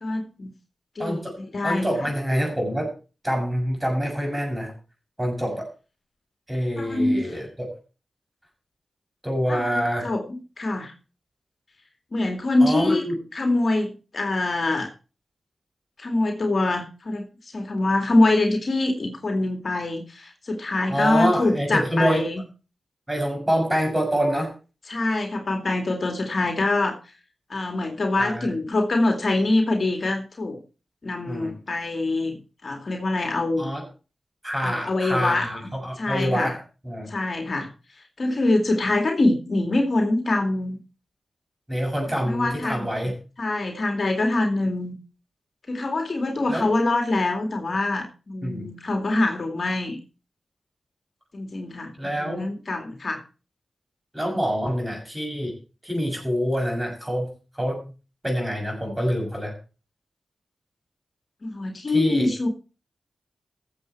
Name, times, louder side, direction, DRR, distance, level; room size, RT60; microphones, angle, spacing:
voice 1, 0.0-0.5 1.0-2.1 6.8-7.2 9.5-10.9 12.1-13.0 13.3-14.9 16.0-17.3 17.5-22.4 24.9-27.0 27.5-30.6 31.0-33.7 34.6-36.5 37.1-37.7 38.2-40.8 42.2-43.1 43.4-44.9 45.7-50.0 51.3-53.2 61.4-62.5, left 2 dB, 55° left, 4 dB, 2.2 m, -24 dB
voice 2, 1.0-1.4 1.6-2.9 3.2-4.7 5.2-5.7 6.5-7.7 9.2-10.1 12.6-13.2 20.9-22.3 23.1-24.5 28.2-28.5 31.3-31.6 33.6-33.8 34.4-36.6 36.8-37.1 41.7-43.1 46.5-46.7 48.4-48.7 52.0-52.5 54.1-55.5 55.8-57.3 57.6-57.8 58.2-59.5 61.9-62.3, equal, 15° right, 1 dB, 6.8 m, -26 dB
15.5 x 7.4 x 4.6 m, 0.34 s
cardioid pair, 50°, 0 cm